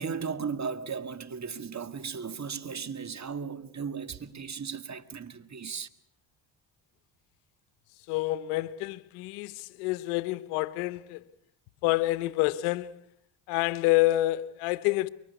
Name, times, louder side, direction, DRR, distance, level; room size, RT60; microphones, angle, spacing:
voice 1, 0.0-5.9, right 6 dB, 35° right, 1.8 m, -36 dB
voice 2, 8.1-11.2 11.8-13.0 13.5-15.1, left 18 dB, 90° left, 1.1 m, -28 dB
24.5 x 23.0 x 8.2 m
supercardioid pair, 75°, 50 cm